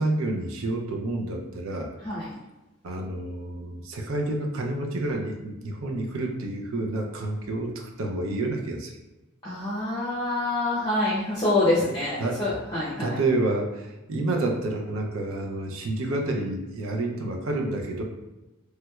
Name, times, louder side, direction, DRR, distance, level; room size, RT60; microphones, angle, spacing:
voice 1, 0.0-1.9 2.8-8.9 12.2-12.4 13.0-18.0, right 2 dB, 90° right, 2 dB, 0.5 m, -29 dB
voice 2, 9.4-13.2, left 2 dB, 20° left, -9 dB, 0.6 m, -26 dB
3.2 x 3.0 x 2.3 m, 1.0 s
head